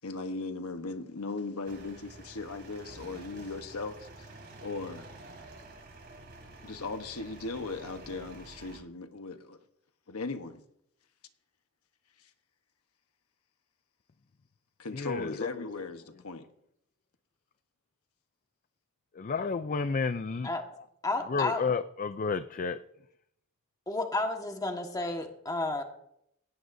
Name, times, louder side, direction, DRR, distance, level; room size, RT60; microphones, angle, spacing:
voice 1, 0.0-4.3 4.6-5.1 6.6-9.6 10.1-10.6 12.2-12.3 14.8-16.5, left 3 dB, 85° left, 1.1 m, -38 dB
sound 1, 1.7-8.8, right 2 dB, 50° right, 3.4 m, -49 dB
voice 2, 14.9-15.8 19.1-20.5 21.2-22.8, left 4 dB, 35° left, 0.4 m, -31 dB
voice 3, 21.0-21.6 23.9-25.8, left 2 dB, 15° left, 1.5 m, -31 dB
17.5 x 17.0 x 2.7 m
head